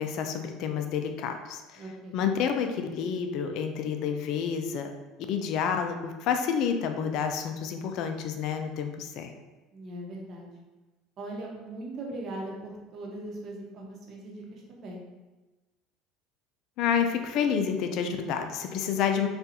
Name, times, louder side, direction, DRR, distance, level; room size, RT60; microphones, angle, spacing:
voice 1, 0.0-1.8 2.1-4.9 5.3-9.3 16.8-19.3, left 7 dB, 60° left, 6 dB, 0.3 m, -29 dB
voice 2, 1.8-2.2 9.7-10.5 11.2-15.0, right 1 dB, 45° right, -1 dB, 0.9 m, -39 dB
4.1 x 2.4 x 2.6 m, 1.1 s
supercardioid pair, 95°, 0 cm